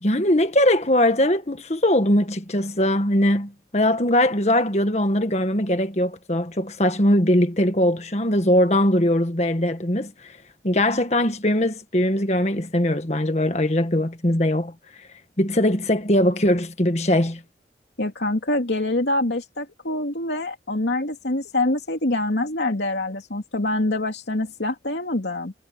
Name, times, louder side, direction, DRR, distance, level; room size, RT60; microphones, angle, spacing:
voice 1, 0.0-10.1 10.6-14.7 15.4-17.4, left 1 dB, 40° left, 1.7 m, -21 dB
voice 2, 18.0-25.5, left 2 dB, 85° left, 2.7 m, -25 dB
head